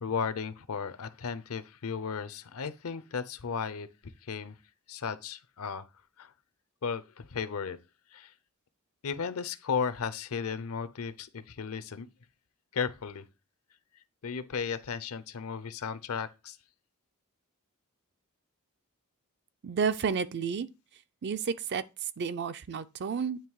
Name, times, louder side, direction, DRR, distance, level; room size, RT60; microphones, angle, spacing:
voice 1, 0.0-3.9 4.3-4.5 4.9-5.8 6.2-6.3 6.8-7.8 8.1-8.3 9.0-12.1 12.7-13.2 14.2-16.6, left 6 dB, 70° left, 0.6 m, -35 dB
voice 2, 19.6-20.7 21.2-23.4, right 6 dB, 50° right, 0.4 m, -31 dB
9.0 x 3.0 x 4.7 m
head